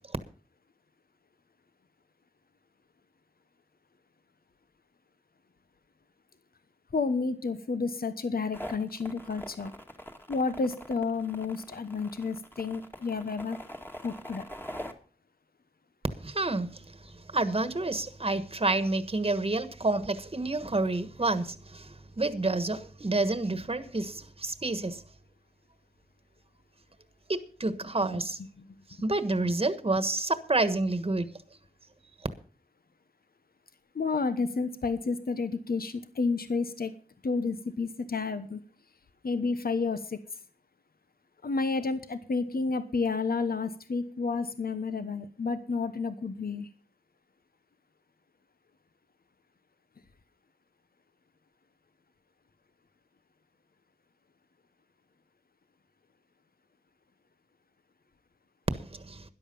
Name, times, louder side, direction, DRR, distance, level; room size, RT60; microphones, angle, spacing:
voice 1, 6.9-9.7 10.3-13.6 14.0-14.5 28.1-28.2 28.6-28.7 29.4-29.5 33.9-36.9 37.2-38.6 39.2-40.2 41.4-46.7, left 4 dB, 75° left, 1.1 m, -31 dB
sound 1, 8.5-14.9, equal, 15° left, 2.0 m, -43 dB
voice 2, 16.2-16.8 17.3-21.9 22.2-25.0 27.3-28.4 29.0-31.3 58.7-58.8 59.1-59.2, right 2 dB, 35° right, 1.4 m, -29 dB
13.0 x 11.0 x 5.4 m
wide cardioid pair, 70°, 16 cm